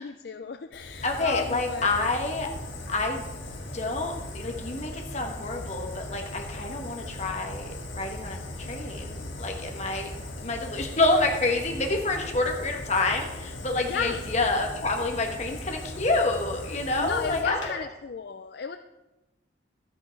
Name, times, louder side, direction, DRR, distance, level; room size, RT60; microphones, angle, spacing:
voice 1, 0.0-1.9 13.7-14.2 17.0-18.8, left 5 dB, 55° left, 9 dB, 0.4 m, -33 dB
Fire, 0.7-17.7, left 1 dB, 90° left, 2.1 m, -38 dB
voice 2, 1.0-2.5 2.9-3.2 3.7-10.1 10.4-17.6, left 2 dB, 35° left, 2 dB, 1.5 m, -28 dB
13.0 x 10.0 x 4.6 m, 1.0 s
head